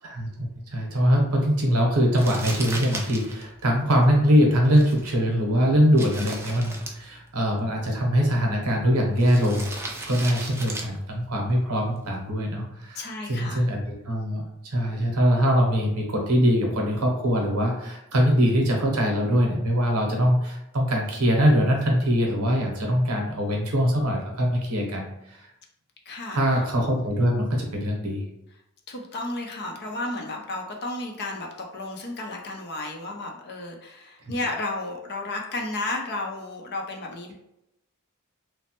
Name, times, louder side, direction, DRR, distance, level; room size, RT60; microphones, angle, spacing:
voice 1, 0.7-9.7 10.1-25.5 26.3-28.2, equal, 70° right, 0 dB, 0.8 m, -22 dB
Crumpling crinkling, 2.1-12.3, right 2 dB, 10° right, 0.3 m, -39 dB
voice 2, 12.9-13.7 26.1-26.6 28.9-37.3, left 2 dB, 50° left, 1 dB, 0.5 m, -33 dB
3.1 x 2.0 x 2.9 m, 0.85 s
head